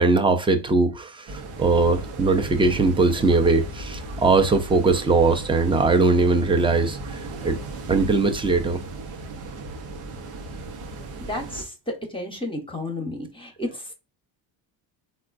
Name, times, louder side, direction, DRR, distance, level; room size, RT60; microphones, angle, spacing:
voice 1, 0.0-7.6 7.9-8.8, right 3 dB, 10° right, 0.4 m, -20 dB
sound 1, 1.3-11.6, right 2 dB, 90° right, 0.9 m, -36 dB
voice 2, 11.2-13.9, left 1 dB, 10° left, 0.8 m, -32 dB
3.6 x 2.3 x 2.4 m
supercardioid pair, 85°, 49 cm